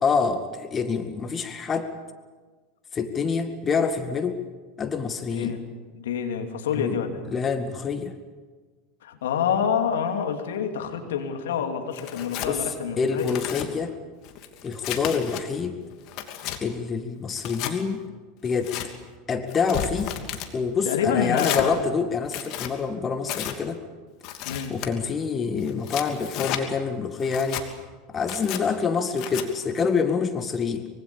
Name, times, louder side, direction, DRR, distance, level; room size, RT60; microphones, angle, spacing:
voice 1, 0.0-1.9 2.9-4.4 4.8-5.6 6.8-7.0 7.3-8.1 12.5-12.6 13.0-14.0 14.6-15.8 16.6-18.0 18.4-18.8 19.3-20.2 20.5-23.8 24.7-27.6 28.1-30.9, left 5 dB, 30° left, 8 dB, 2.0 m, -26 dB
voice 2, 5.3-5.6 6.0-7.2 9.0-13.3 20.8-21.8 24.5-24.8, left 7 dB, 75° left, 5 dB, 2.9 m, -27 dB
Tearing, 11.9-12.5 13.1-13.7 14.2-15.4 15.9-16.6 17.4-17.7 18.4-18.9 19.5-20.5 21.3-21.7 22.2-22.7 23.3-23.6 24.2-24.9 25.6-26.6 27.2-27.7 28.2-28.6 29.2-29.5, left 11 dB, 55° left, 2.8 m, -33 dB
25.0 x 23.5 x 7.2 m, 1.4 s
hypercardioid pair, 85°, 0 cm